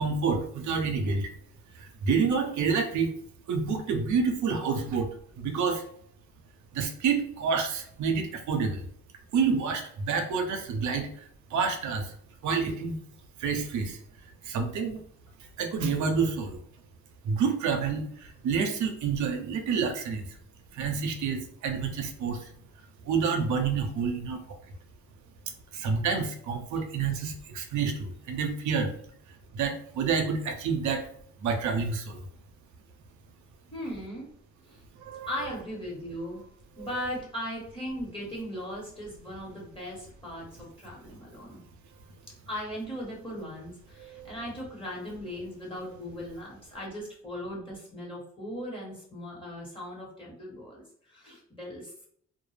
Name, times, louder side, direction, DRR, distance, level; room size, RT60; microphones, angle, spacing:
voice 1, 0.0-1.3 1.7-3.1 3.5-5.1 5.4-5.8 6.7-8.8 9.3-12.2 12.4-13.0 13.4-14.0 14.4-15.0 15.6-16.6 17.2-20.3 20.7-22.5 23.0-24.4 25.7-28.9 29.5-31.1 31.4-32.2 35.0-35.3 36.8-36.9 44.1-44.2, right 5 dB, 70° right, 5 dB, 0.6 m, -28 dB
voice 2, 33.7-34.3 34.6-34.8 35.3-36.4 36.8-41.6 42.5-52.0, equal, 15° left, -4 dB, 1.1 m, -38 dB
2.2 x 2.0 x 3.1 m, 0.64 s
cardioid pair, 90°, 30 cm